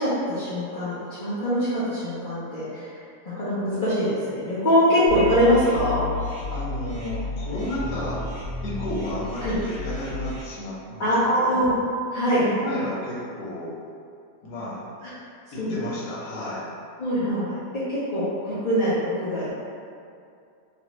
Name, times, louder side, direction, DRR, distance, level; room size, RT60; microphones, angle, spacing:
voice 1, 0.0-2.9 3.2-6.0 9.4-9.6 11.0-11.7 12.1-12.4 15.0-15.1 15.6-15.8 17.0-19.5, equal, 50° left, -12 dB, 0.6 m, -23 dB
sound 1, 5.1-10.4, left 3 dB, 35° right, 1.1 m, -32 dB
voice 2, 6.5-8.3 8.6-11.1 11.4-11.6 12.3-13.8 14.4-14.8 15.5-16.7, left 1 dB, 75° left, -7 dB, 1.4 m, -32 dB
3.0 x 2.6 x 3.0 m, 2.4 s
omnidirectional pair, 1.8 m